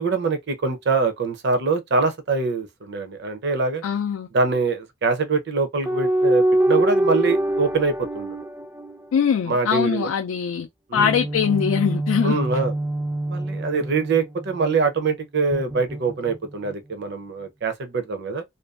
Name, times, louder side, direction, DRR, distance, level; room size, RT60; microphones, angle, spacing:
voice 1, 0.0-3.8 4.3-8.4 9.5-10.1 10.9-11.1 12.2-12.7 13.3-18.4, right 4 dB, 55° right, 0.5 m, -24 dB
voice 2, 3.8-4.3 9.1-10.7 10.9-12.4, left 7 dB, 80° left, 0.3 m, -22 dB
sound 1, 5.9-9.5 11.0-14.7 15.5-16.7, right 1 dB, 10° right, 0.3 m, -24 dB
2.5 x 2.2 x 2.3 m
head